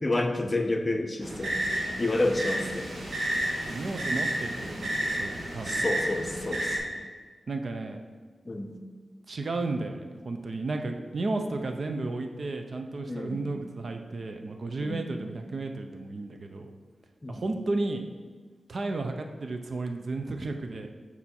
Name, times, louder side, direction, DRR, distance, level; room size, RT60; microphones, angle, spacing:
voice 1, 0.0-2.9 5.6-6.8 8.5-8.7 13.1-13.5 14.8-15.1 17.2-17.5, left 2 dB, 30° left, 5 dB, 0.6 m, -30 dB
sound 1, 1.2-6.8, right 1 dB, 80° right, 1.4 m, -31 dB
voice 2, 3.6-5.9 7.5-8.0 9.3-16.7 17.3-18.0 18.7-20.9, right 2 dB, 60° right, 5 dB, 0.6 m, -33 dB
6.9 x 4.2 x 4.3 m, 1.5 s
wide cardioid pair, 90°, 0 cm